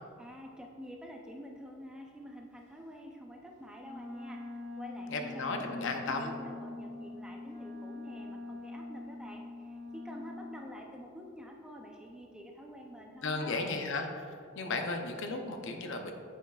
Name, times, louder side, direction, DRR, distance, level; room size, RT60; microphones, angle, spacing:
voice 1, 0.2-13.7, equal, 5° right, 0 dB, 0.5 m, -48 dB
Wind instrument woodwind instrument, 3.8-10.6, left 2 dB, 35° right, 1.1 m, -44 dB
voice 2, 5.1-6.3 13.2-16.1, left 3 dB, 55° left, 4 dB, 0.6 m, -35 dB
8.9 x 7.0 x 2.4 m, 2.3 s
head